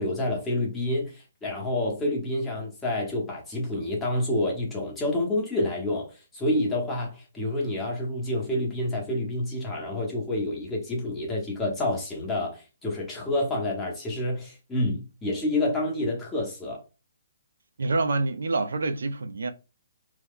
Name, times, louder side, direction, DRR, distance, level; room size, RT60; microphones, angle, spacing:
voice 1, 0.0-16.8, left 1 dB, 10° left, 0.9 m, -28 dB
voice 2, 17.8-19.5, right 3 dB, 85° right, 0.4 m, -26 dB
2.9 x 2.1 x 3.6 m
hypercardioid pair, 165°, 0 cm